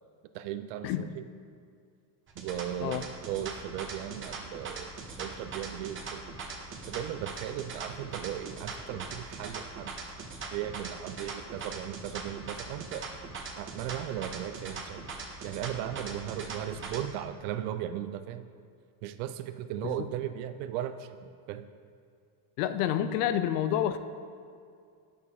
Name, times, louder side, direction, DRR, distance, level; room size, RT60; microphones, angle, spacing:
voice 1, 0.3-1.2 2.4-4.9 5.2-6.3 6.9-9.9 10.5-13.1 13.6-15.0 15.4-18.5 19.0-21.7, right 11 dB, 70° right, 10 dB, 0.6 m, -37 dB
sound 1, 2.3-17.1, right 4 dB, 25° right, 1.0 m, -41 dB
voice 2, 22.6-24.0, left 11 dB, 85° left, 10 dB, 0.6 m, -28 dB
9.4 x 6.6 x 3.6 m, 2.2 s
supercardioid pair, 120°, 45 cm